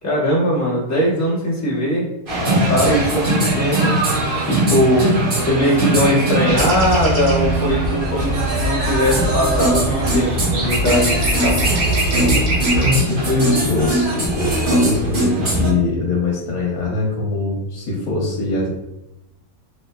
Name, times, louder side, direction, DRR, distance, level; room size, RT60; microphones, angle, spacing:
voice 1, 0.0-2.1 2.4-4.0 4.5-5.1 5.4-11.6, equal, 15° left, -7 dB, 0.9 m, -20 dB
sound 1, 2.3-15.7, right 1 dB, 45° right, 0.9 m, -21 dB
voice 2, 2.4-2.9 12.1-18.7, left 3 dB, 90° left, -3 dB, 1.2 m, -22 dB
sound 2, 6.5-13.0, right 1 dB, 80° right, 1.5 m, -22 dB
3.2 x 3.1 x 2.2 m, 0.89 s
omnidirectional pair, 1.5 m